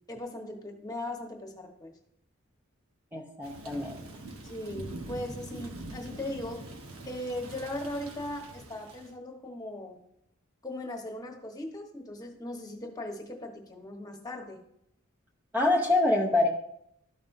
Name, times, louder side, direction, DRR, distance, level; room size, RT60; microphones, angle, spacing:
voice 1, 0.1-1.9 4.4-6.6 7.1-10.0 10.6-14.6, left 1 dB, 20° left, 1 dB, 1.3 m, -38 dB
voice 2, 3.1-4.0 15.5-16.5, left 2 dB, 10° right, -1 dB, 0.7 m, -25 dB
Thunder / Rain, 3.4-9.1, right 2 dB, 85° right, 1.1 m, -44 dB
13.0 x 5.4 x 2.7 m, 0.75 s
head